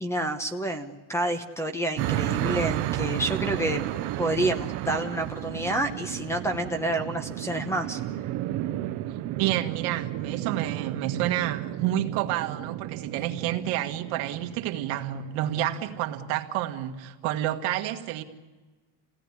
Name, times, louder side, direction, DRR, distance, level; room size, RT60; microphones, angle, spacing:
voice 1, 0.0-3.8 4.2-8.0, right 1 dB, 5° left, 1.0 m, -29 dB
sound 1, 2.0-16.2, right 14 dB, 55° right, 0.9 m, -32 dB
voice 2, 9.3-18.2, right 13 dB, 75° right, 1.8 m, -29 dB
28.0 x 17.5 x 9.8 m
cardioid pair, 175°, 47 cm